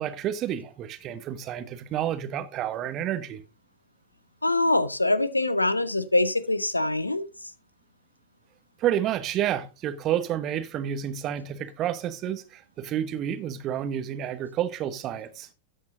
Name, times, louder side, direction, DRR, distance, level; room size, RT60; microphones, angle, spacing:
voice 1, 0.0-3.4 8.8-15.5, right 10 dB, 35° right, 1.1 m, -30 dB
voice 2, 4.4-7.3, left 2 dB, 85° left, 0.8 m, -24 dB
13.0 x 8.5 x 2.6 m
figure-of-eight pair, 90°, 0 cm